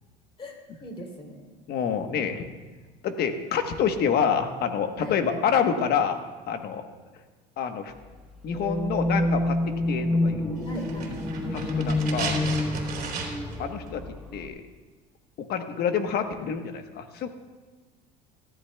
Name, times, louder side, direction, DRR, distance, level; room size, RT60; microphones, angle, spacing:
voice 1, 0.4-1.5 5.0-5.4 10.6-11.1, equal, 25° left, 1 dB, 3.2 m, -40 dB
voice 2, 1.7-2.5 3.0-6.2 6.5-6.8 7.6-7.9 8.4-9.6 9.9-10.7 11.5-12.4 13.6-14.0 14.3-14.5 15.4-17.3, left 7 dB, 50° left, 7 dB, 1.2 m, -27 dB
sound 1, 8.5-14.5, left 1 dB, ahead, 1.2 m, -28 dB
sound 2, 10.8-13.6 13.9-14.0, right 5 dB, 45° right, 3.5 m, -34 dB
18.0 x 14.0 x 2.3 m, 1.4 s
supercardioid pair, 110°, 21 cm